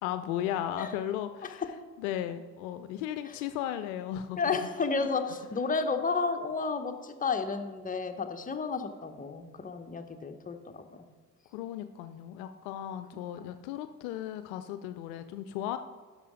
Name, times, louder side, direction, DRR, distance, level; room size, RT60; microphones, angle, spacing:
voice 1, 0.0-1.6 2.0-4.6 5.0-5.1 11.5-15.8, left 11 dB, 65° left, 10 dB, 0.6 m, -35 dB
voice 2, 4.4-11.0 13.1-13.5, left 4 dB, 15° left, 6 dB, 0.9 m, -32 dB
12.0 x 5.0 x 4.9 m, 1.5 s
figure-of-eight pair, 50°, 48 cm